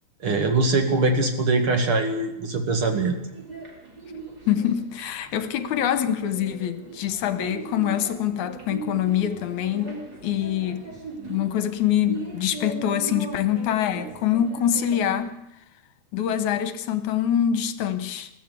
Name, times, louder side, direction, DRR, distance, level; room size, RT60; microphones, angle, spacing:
voice 1, 0.2-3.2, right 3 dB, 45° right, 2.7 m, -22 dB
sound 1, 2.7-15.3, right 3 dB, 30° right, 4.2 m, -39 dB
voice 2, 4.5-10.0 10.2-10.9 11.3-15.4 16.1-18.3, left 10 dB, 75° left, 2.4 m, -25 dB
21.5 x 15.0 x 8.4 m
omnidirectional pair, 3.5 m